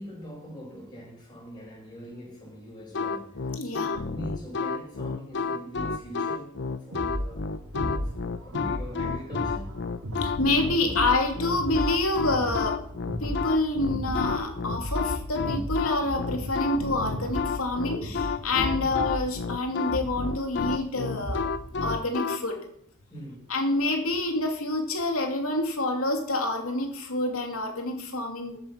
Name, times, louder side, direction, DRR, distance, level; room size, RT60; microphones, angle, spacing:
voice 1, 0.0-7.5 7.9-9.7 18.7-18.9 23.1-23.4, equal, 20° left, -5 dB, 7.2 m, -43 dB
sound 1, 2.9-22.4, left 5 dB, 55° left, 0.7 m, -30 dB
voice 2, 3.6-4.0 10.2-12.8 13.2-21.5 21.8-22.6 23.5-28.6, left 2 dB, 70° left, 3 dB, 3.0 m, -27 dB
sound 2, 6.9-21.7, equal, 80° right, 2.7 m, -35 dB
14.5 x 8.1 x 6.0 m, 0.65 s
head